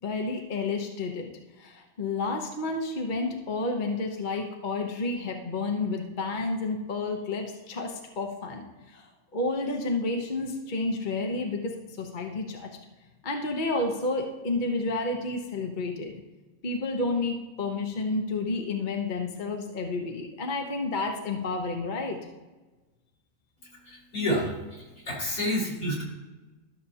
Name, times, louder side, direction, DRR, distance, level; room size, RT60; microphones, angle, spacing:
voice 1, 0.0-1.3 1.6-9.1 9.3-12.7 13.2-16.1 16.6-22.2, left 3 dB, 35° left, 2 dB, 1.0 m, -30 dB
voice 2, 23.9-26.0, equal, 70° left, -4 dB, 3.6 m, -29 dB
13.0 x 6.8 x 2.8 m, 1.2 s
omnidirectional pair, 1.5 m